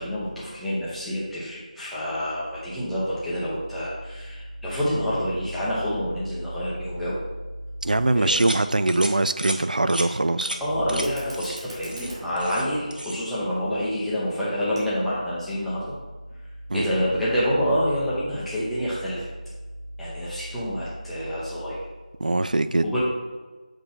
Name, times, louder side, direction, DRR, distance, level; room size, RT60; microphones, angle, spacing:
voice 1, 0.0-7.2 8.1-8.5 10.6-15.9 16.4-19.3 20.0-21.8 22.8-23.0, equal, ahead, -12 dB, 0.7 m, -27 dB
voice 2, 7.8-10.5 16.7-17.0 22.2-22.9, right 2 dB, 70° right, 12 dB, 0.3 m, -22 dB
sound 1, 8.4-8.6 8.9-9.1 9.4-9.6 9.9-10.1 10.4-10.6 10.9-11.1 11.3-11.6 11.9-12.7 12.9-13.2, right 1 dB, 90° right, 1.0 m, -32 dB
Fire, 10.9-15.9, right 1 dB, 35° right, 2.2 m, -46 dB
7.5 x 4.5 x 4.4 m, 1.3 s
figure-of-eight pair, 170°, 5 cm